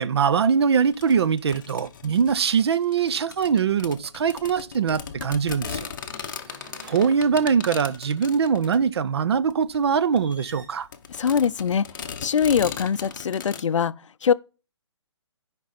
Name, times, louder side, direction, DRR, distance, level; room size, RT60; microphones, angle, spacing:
voice 1, 0.0-5.9 6.9-10.9, right 6 dB, 60° right, 0.5 m, -22 dB
sound 1, 0.9-13.6, left 7 dB, 40° left, 0.8 m, -38 dB
sound 2, 0.9-1.2 1.5-3.6 5.5-8.6 10.1-10.9 12.1-13.5, right 2 dB, 35° right, 1.4 m, -52 dB
voice 2, 11.2-11.9 12.2-13.9 14.2-14.3, left 7 dB, 80° left, 0.4 m, -22 dB
9.5 x 5.1 x 4.1 m
hypercardioid pair, 160°, 16 cm